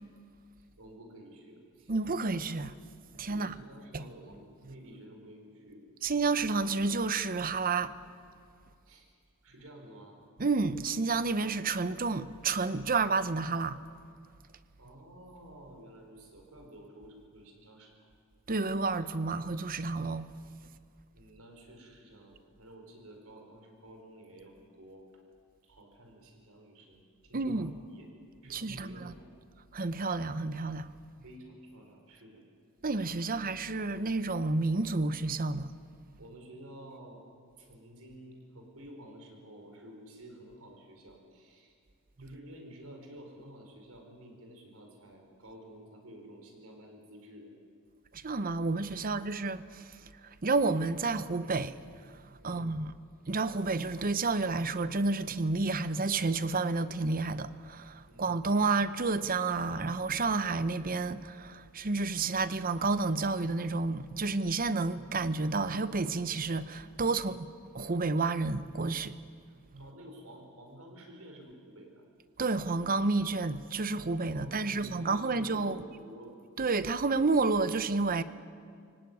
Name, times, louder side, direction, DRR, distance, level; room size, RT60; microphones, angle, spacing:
voice 1, 0.6-1.9 3.3-5.8 8.8-9.1 9.4-10.2 14.8-17.9 21.1-25.1 25.6-28.1 28.4-29.3 31.2-32.4 36.2-37.2 37.6-41.8 42.2-47.5 49.0-49.2 52.4-52.7 58.1-58.3 67.1-67.4 69.8-72.0 74.3-76.3, right 1 dB, 75° right, 4.9 m, -51 dB
voice 2, 1.9-2.7 3.1-3.5 3.9-4.0 6.0-7.9 10.4-13.8 18.5-20.3 27.3-27.8 28.5-29.1 29.7-30.9 32.8-35.7 42.2-42.3 48.1-52.9 53.3-67.5 67.7-69.2 69.7-69.8 72.4-75.8 76.6-78.2, right 3 dB, 40° right, 0.8 m, -30 dB
24.0 x 17.5 x 9.5 m
head